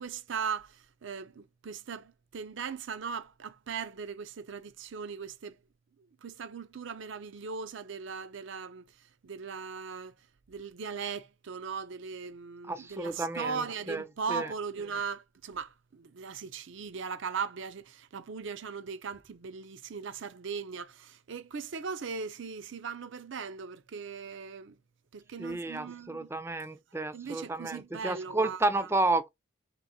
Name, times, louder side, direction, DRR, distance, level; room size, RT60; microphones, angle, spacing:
voice 1, 0.0-5.6 6.2-8.8 9.2-10.1 10.5-24.8 25.1-26.3 27.1-28.9, right 5 dB, 65° right, 0.5 m, -39 dB
voice 2, 12.7-14.5 25.4-29.3, right 2 dB, 10° right, 0.4 m, -31 dB
3.4 x 3.0 x 3.7 m
head